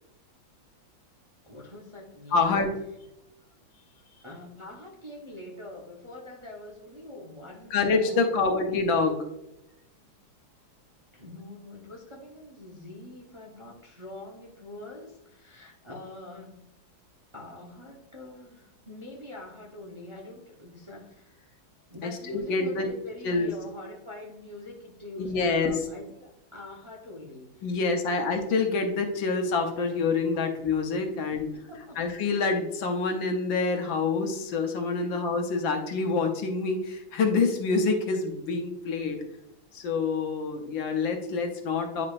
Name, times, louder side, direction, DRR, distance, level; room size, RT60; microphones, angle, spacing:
voice 1, 1.4-2.6 4.2-8.7 10.0-10.1 11.1-16.7 17.3-21.6 21.9-27.8 30.3-30.4 31.1-31.2 31.5-32.0 35.0-35.1, left 2 dB, 25° right, -2 dB, 0.7 m, -45 dB
voice 2, 2.3-2.7 7.7-9.3 22.0-22.9 23.2-23.5 25.2-25.8 27.6-31.5 32.0-39.2 39.7-42.1, left 4 dB, 75° left, 5 dB, 1.6 m, -26 dB
9.5 x 5.0 x 2.5 m, 0.87 s
omnidirectional pair, 2.1 m